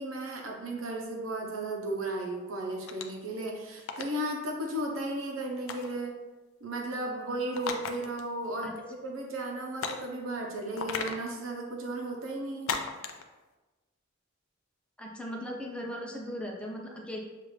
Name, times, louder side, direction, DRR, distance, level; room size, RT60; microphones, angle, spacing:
voice 1, 0.0-6.1 6.6-12.8, right 1 dB, 90° right, 0 dB, 0.9 m, -35 dB
sound 1, 2.9-3.2 3.8-4.1 5.7-6.0 7.5-8.2 8.5-8.6 9.8-10.1 10.8-11.2 12.7-13.2, left 5 dB, 90° left, 0.4 m, -35 dB
voice 2, 15.0-17.2, equal, 5° left, 0 dB, 0.5 m, -38 dB
6.6 x 2.5 x 3.2 m, 1.2 s
head